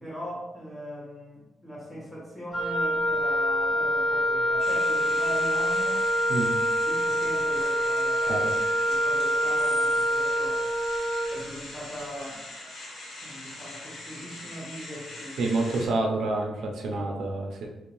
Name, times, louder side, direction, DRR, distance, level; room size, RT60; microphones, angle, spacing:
voice 1, 0.0-6.1 6.8-8.5 8.9-10.6 11.3-12.4 13.2-15.4 16.9-17.1, equal, 10° left, -6 dB, 1.0 m, -40 dB
Wind instrument woodwind instrument, 2.5-11.4, equal, 35° left, 0.8 m, -25 dB
sound 1, 4.6-15.9, left 1 dB, 75° left, 0.8 m, -42 dB
voice 2, 15.4-17.7, right 2 dB, 75° right, 0 dB, 0.4 m, -28 dB
2.6 x 2.1 x 3.0 m, 0.96 s
wide cardioid pair, 155°, 0 cm